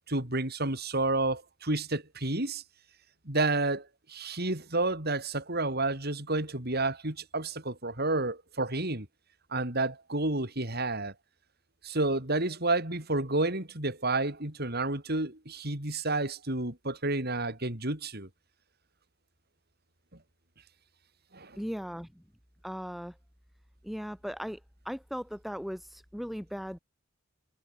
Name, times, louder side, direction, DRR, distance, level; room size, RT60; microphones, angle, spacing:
voice 1, 0.1-2.6 3.3-9.1 9.5-11.1 11.8-18.3 21.3-21.6, right 2 dB, 50° right, 5.4 m, -30 dB
voice 2, 21.6-22.2 22.6-23.1 23.8-24.6 24.9-26.8, equal, ahead, 2.1 m, -37 dB
head